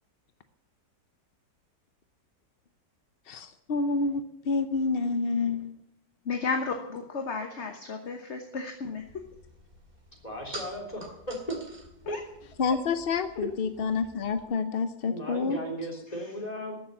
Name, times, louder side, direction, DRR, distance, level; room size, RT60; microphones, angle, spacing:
voice 1, 3.3-5.7 12.6-15.6, left 4 dB, 60° left, 10 dB, 0.6 m, -28 dB
voice 2, 6.3-9.0 12.0-12.2, left 4 dB, 45° left, 5 dB, 1.3 m, -33 dB
sound 1, 9.0-14.5, right 1 dB, 30° right, 2.4 m, -48 dB
voice 3, 10.2-11.6 12.1-12.2 13.4-13.5 15.1-16.8, equal, 20° left, 0 dB, 3.7 m, -35 dB
13.5 x 7.2 x 9.7 m, 0.79 s
omnidirectional pair, 2.0 m